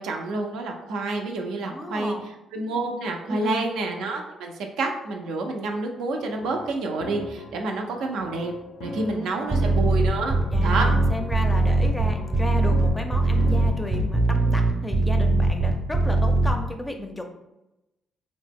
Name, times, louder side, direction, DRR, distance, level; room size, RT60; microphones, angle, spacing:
voice 1, 0.0-2.1 2.5-8.5 8.8-10.4 10.6-10.9, right 3 dB, 85° right, 2 dB, 0.4 m, -28 dB
voice 2, 1.7-2.3 3.3-3.7 9.1-9.5 10.5-17.2, left 1 dB, 10° left, 4 dB, 0.4 m, -33 dB
sound 1, 6.2-13.9, left 1 dB, 85° left, 0.5 m, -40 dB
sound 2, 9.5-16.5, right 2 dB, 35° right, 0.6 m, -21 dB
2.7 x 2.0 x 3.4 m, 0.94 s
cardioid pair, 90°, 0 cm